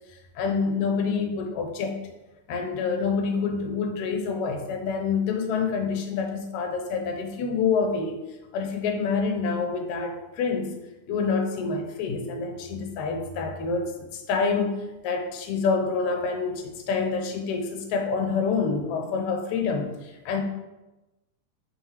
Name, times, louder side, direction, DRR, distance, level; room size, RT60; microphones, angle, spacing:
voice 1, 0.4-2.0 2.5-8.2 8.5-10.7 11.1-14.8 15.0-20.4, left 5 dB, 70° left, 4 dB, 2.0 m, -27 dB
9.4 x 4.4 x 3.2 m, 1.0 s
omnidirectional pair, 3.9 m